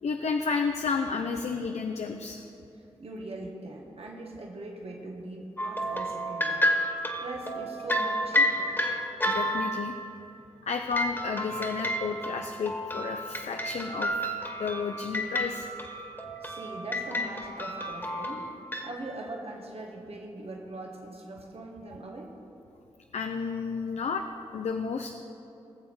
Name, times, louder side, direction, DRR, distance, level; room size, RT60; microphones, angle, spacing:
voice 1, 0.0-2.5 9.3-9.9 10.6-14.3 14.6-15.7 23.1-24.2 24.5-25.1, left 5 dB, 75° left, 5 dB, 0.6 m, -31 dB
voice 2, 3.0-6.7 7.2-8.8 16.4-18.5 18.8-22.3, right 2 dB, 60° right, 0 dB, 1.8 m, -41 dB
sound 1, 5.6-10.0 10.9-18.9, equal, 20° left, 2.0 m, -30 dB
20.0 x 7.2 x 4.8 m, 2.9 s
cardioid pair, 45°, 11 cm